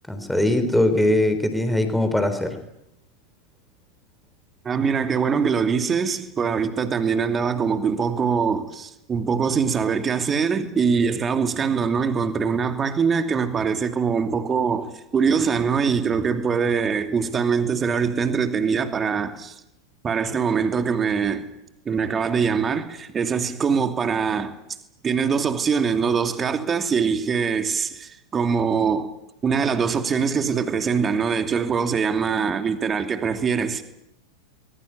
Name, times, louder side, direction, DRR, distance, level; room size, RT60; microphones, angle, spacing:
voice 1, 0.1-2.6, left 1 dB, ahead, 3.6 m, -21 dB
voice 2, 4.6-19.5 20.0-21.5 21.9-24.5 25.0-29.1 29.4-33.8, right 6 dB, 20° right, 2.6 m, -23 dB
22.5 x 21.5 x 9.8 m
figure-of-eight pair, 90°, 0 cm